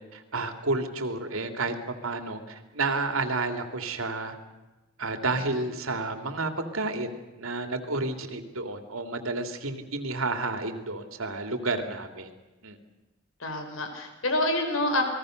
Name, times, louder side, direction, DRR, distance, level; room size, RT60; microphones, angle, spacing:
voice 1, 0.0-4.4 5.0-12.3 12.6-12.8, right 3 dB, 85° right, 7 dB, 2.9 m, -31 dB
voice 2, 13.4-15.0, left 1 dB, 75° left, 5 dB, 4.7 m, -28 dB
29.5 x 20.5 x 6.6 m, 1.1 s
head